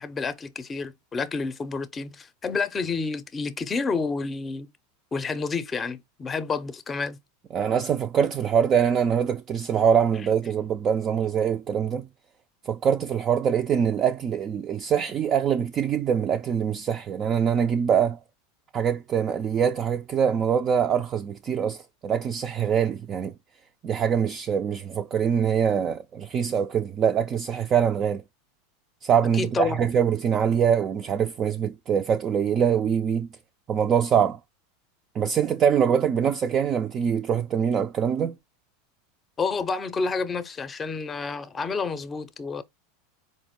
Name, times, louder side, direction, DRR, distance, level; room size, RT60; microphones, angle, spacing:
voice 1, 0.0-4.7 5.1-7.2 29.3-29.8 39.4-42.6, left 4 dB, 20° left, 0.5 m, -29 dB
voice 2, 7.5-12.1 12.6-18.2 18.7-23.3 23.8-28.2 29.0-33.3 33.7-34.4 35.1-38.3, right 8 dB, 35° right, 0.3 m, -24 dB
4.4 x 2.1 x 3.6 m
supercardioid pair, 120°, 0 cm